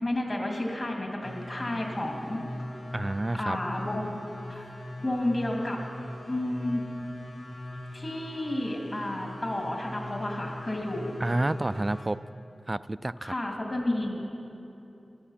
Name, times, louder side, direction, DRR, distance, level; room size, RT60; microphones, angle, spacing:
voice 1, 0.0-2.4 3.4-4.2 4.5-4.7 5.0-5.8 6.3-6.8 7.9-11.1 13.2-14.2, left 1 dB, 45° left, 1 dB, 2.6 m, -31 dB
sound 1, 1.2-12.1, left 1 dB, 80° left, 3.1 m, -40 dB
voice 2, 2.9-3.6 11.2-12.2 12.7-13.3, right 2 dB, 30° right, 15 dB, 0.3 m, -29 dB
14.0 x 11.0 x 5.7 m, 2.8 s
cardioid pair, 50°, 0 cm